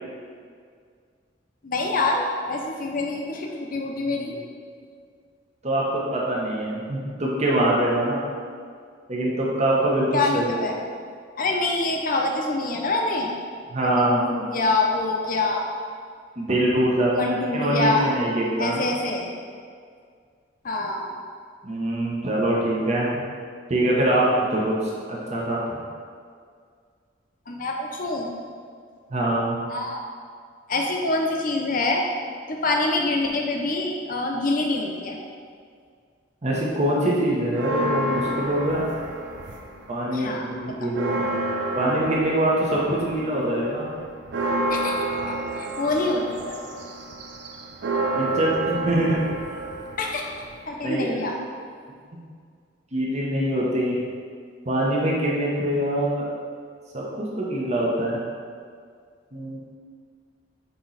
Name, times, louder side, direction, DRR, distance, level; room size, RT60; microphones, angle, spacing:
voice 1, 1.6-4.4 10.1-10.8 11.4-13.3 13.8-15.7 17.1-18.1 18.6-19.3 20.6-21.1 27.5-28.3 29.7-30.0 30.7-32.0 32.5-35.2 40.1-40.7 44.7-46.6 50.0-50.3 50.7-51.4, left 2 dB, 50° left, 1 dB, 0.7 m, -26 dB
voice 2, 5.6-8.2 9.1-10.7 13.7-14.2 16.4-18.9 21.6-23.1 23.7-24.3 24.5-24.8 25.1-25.8 29.1-29.6 36.4-38.9 39.9-41.3 41.7-43.9 48.1-49.2 50.8-51.2 52.9-54.0 54.7-56.3 56.9-58.2 59.3-59.6, right 1 dB, 40° right, -4 dB, 0.9 m, -24 dB
sound 1, 37.5-39.9 40.3-50.8, right 2 dB, 65° right, 0.5 m, -29 dB
7.8 x 3.1 x 4.0 m, 2.1 s
head